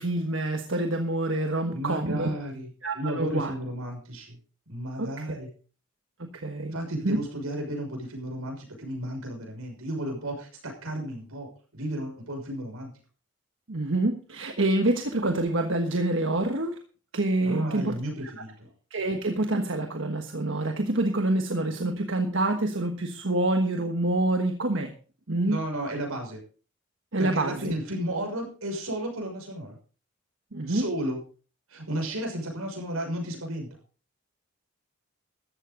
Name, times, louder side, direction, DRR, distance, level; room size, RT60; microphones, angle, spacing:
voice 1, 0.0-2.3 2.8-3.5 5.0-5.5 6.2-6.8 7.0-7.2 13.7-16.8 17.1-17.9 18.4-18.5 18.9-24.9 25.3-25.6 27.1-27.7 30.5-30.9, right 2 dB, 60° right, 5 dB, 1.4 m, -27 dB
voice 2, 1.7-4.4 4.7-5.5 6.7-12.9 17.4-18.7 25.4-26.4 27.1-29.8 30.7-31.2 31.7-33.8, right 1 dB, 85° right, 2 dB, 6.2 m, -33 dB
14.0 x 13.0 x 3.9 m, 0.38 s
head